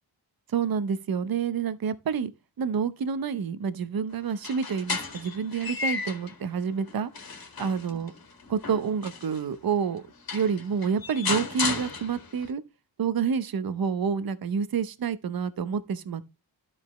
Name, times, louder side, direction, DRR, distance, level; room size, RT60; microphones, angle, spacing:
voice 1, 0.5-2.3 2.6-7.1 7.6-8.1 8.5-10.0 10.3-12.6 13.0-16.4, right 6 dB, 55° right, 0.7 m, -28 dB
sound 1, 4.3-6.4 6.9-9.4 10.0-10.1 10.3-12.5, left 4 dB, 60° left, 1.9 m, -34 dB
12.5 x 5.1 x 3.1 m
wide cardioid pair, 135°, 42 cm